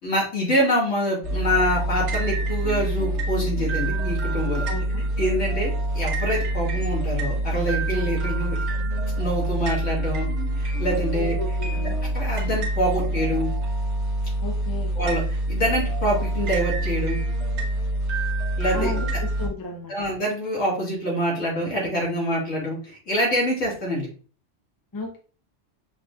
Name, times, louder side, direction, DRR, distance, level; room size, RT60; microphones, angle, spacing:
voice 1, 0.0-4.7 5.2-8.6 9.2-10.3 10.6-11.4 12.1-13.5 15.0-17.2 18.6-18.9 19.9-24.1, equal, 85° left, -4 dB, 2.2 m, -25 dB
sound 1, 1.2-19.5, right 1 dB, 70° right, 1.2 m, -26 dB
voice 2, 4.7-5.1 11.1-12.0 14.4-15.0 18.7-20.1 24.9-25.2, left 3 dB, 20° left, 2 dB, 0.6 m, -34 dB
5.7 x 3.0 x 2.3 m, 0.38 s
omnidirectional pair, 1.3 m